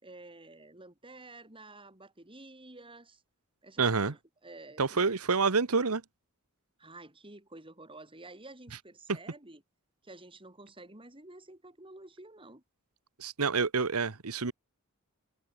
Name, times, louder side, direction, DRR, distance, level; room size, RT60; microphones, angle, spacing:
voice 1, 0.0-3.2 3.6-5.1 6.8-9.6 10.0-12.6, right 2 dB, 25° right, 6.6 m, -51 dB
voice 2, 3.8-4.1 4.8-6.0 13.2-14.5, right 4 dB, 80° right, 1.2 m, -27 dB
head